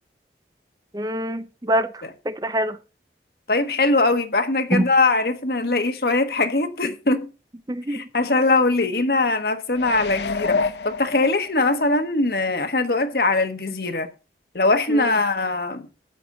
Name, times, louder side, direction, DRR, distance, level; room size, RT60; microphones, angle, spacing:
voice 1, 0.9-1.9 2.3-2.8 4.7-4.9 7.7-8.0 14.9-15.1, right 1 dB, 20° right, 0.6 m, -24 dB
voice 2, 3.5-7.3 7.9-10.6 10.8-14.1 14.5-15.8, left 2 dB, 60° left, 1.3 m, -21 dB
sound 1, 9.7-11.8 12.3-12.4, left 4 dB, 80° left, 0.6 m, -27 dB
13.5 x 8.9 x 3.9 m
head